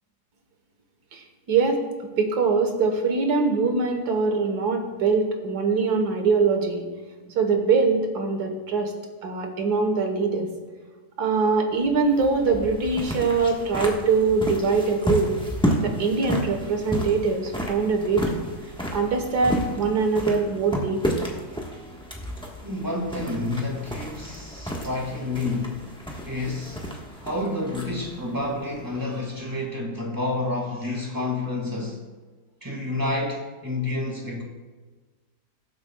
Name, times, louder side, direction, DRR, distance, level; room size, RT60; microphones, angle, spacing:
voice 1, 1.1-1.8 2.2-6.9 7.3-8.9 9.2-10.5 11.2-15.3 15.8-18.4 18.9-21.3, right 4 dB, 75° right, 4 dB, 1.8 m, -23 dB
sound 1, 11.7-29.4, equal, 5° left, 1.2 m, -32 dB
voice 2, 22.6-25.9 26.2-26.8 27.2-32.1 32.6-34.4, left 2 dB, 10° right, -1 dB, 1.8 m, -29 dB
19.0 x 7.7 x 2.3 m, 1.3 s
omnidirectional pair, 1.7 m